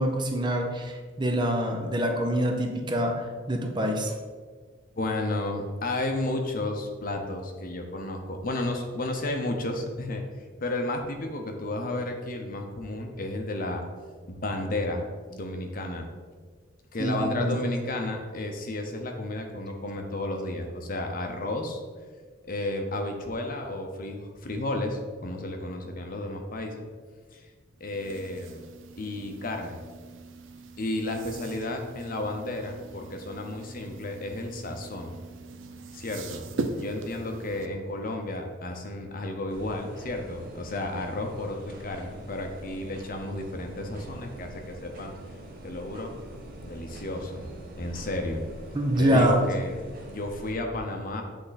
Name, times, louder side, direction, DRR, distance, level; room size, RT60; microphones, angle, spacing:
voice 1, 0.0-4.1 17.0-17.6 48.7-49.4, right 1 dB, 25° right, 3 dB, 0.6 m, -25 dB
voice 2, 5.0-10.2 10.6-13.8 14.3-15.0 15.3-16.1 16.9-21.8 22.5-26.9 27.3-27.5 27.8-28.6 29.0-29.8 30.8-35.1 35.9-36.4 36.8-45.1 45.6-46.1 46.6-47.5 47.8-48.4 49.0-49.8 50.1-51.2, left 2 dB, 45° left, 3 dB, 0.7 m, -32 dB
sound 1, 27.8-37.7, right 3 dB, 80° right, 0.5 m, -40 dB
sound 2, 39.5-50.5, right 1 dB, 50° right, 1.1 m, -44 dB
7.8 x 3.6 x 4.1 m, 1.5 s
head